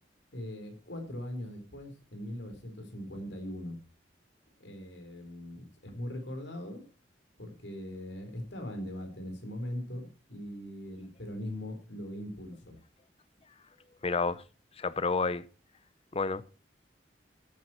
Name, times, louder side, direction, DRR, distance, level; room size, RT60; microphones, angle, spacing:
voice 1, 0.3-3.8 4.6-6.8 7.4-12.8, left 1 dB, 80° left, 4.1 m, -40 dB
voice 2, 14.0-14.4 14.8-15.4 16.1-16.4, left 4 dB, 35° left, 0.6 m, -29 dB
14.0 x 9.2 x 4.4 m
head